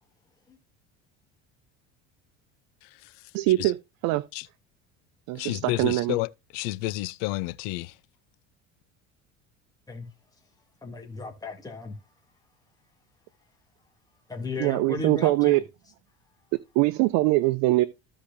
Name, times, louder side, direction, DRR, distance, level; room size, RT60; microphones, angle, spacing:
voice 1, 3.3-3.8 4.0-4.2 5.3-6.2 14.6-15.6 16.7-17.8, right 18 dB, 75° right, 0.8 m, -22 dB
voice 2, 5.3-7.9, left 18 dB, 80° left, 0.7 m, -31 dB
voice 3, 10.8-11.9 14.3-15.6, left 3 dB, 10° left, 2.6 m, -35 dB
15.0 x 5.1 x 2.7 m
cardioid pair, 125°, 30 cm